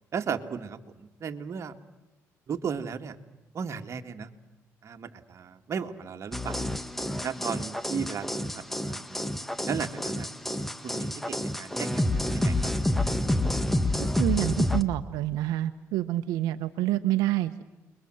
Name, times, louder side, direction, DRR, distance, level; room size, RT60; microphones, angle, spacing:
voice 1, 0.1-1.7 2.5-3.2 3.5-4.3 4.8-6.7 7.2-9.2 9.7-10.3 10.8-12.7, right 6 dB, 50° right, 6 dB, 2.0 m, -35 dB
sound 1, 6.3-14.8, left 1 dB, 5° left, 1.6 m, -28 dB
voice 2, 14.2-17.6, right 15 dB, 90° right, 9 dB, 0.9 m, -27 dB
29.5 x 22.0 x 7.8 m, 1.0 s
cardioid pair, 85°, 6 cm